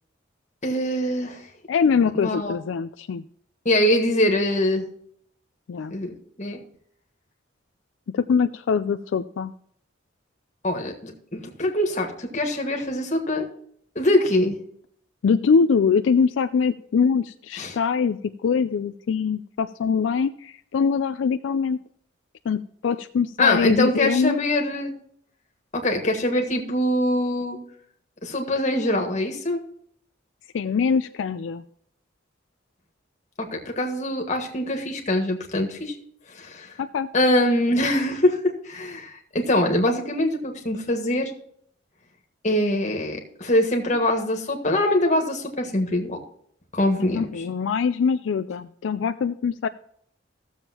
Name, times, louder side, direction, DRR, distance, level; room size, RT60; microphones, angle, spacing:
voice 1, 0.6-1.5 2.1-2.5 3.6-4.9 5.9-6.6 10.6-13.5 13.9-14.6 17.6-17.8 23.4-24.9 25.7-27.6 28.2-29.6 33.4-36.0 36.3-36.8 37.1-41.3 42.4-46.2 46.7-47.4, left 1 dB, 40° left, 2 dB, 1.7 m, -23 dB
voice 2, 1.7-3.2 5.7-6.0 8.1-9.5 15.2-21.8 22.5-24.4 30.5-31.6 36.8-37.1 47.1-49.7, left 5 dB, 75° left, 11 dB, 0.4 m, -23 dB
15.0 x 7.2 x 2.9 m, 0.65 s
head